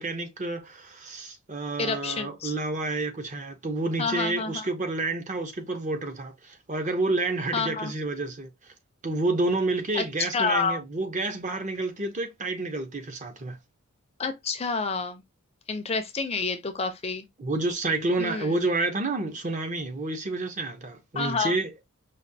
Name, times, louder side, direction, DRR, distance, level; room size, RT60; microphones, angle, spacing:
voice 1, 0.0-8.5 9.0-13.6 17.4-21.7, right 2 dB, 35° right, 0.7 m, -29 dB
voice 2, 1.8-2.5 4.0-4.7 7.5-7.9 9.9-10.8 14.2-15.2 15.7-17.3 18.2-18.5 21.2-21.5, left 4 dB, 30° left, 0.5 m, -29 dB
5.1 x 2.4 x 2.6 m
head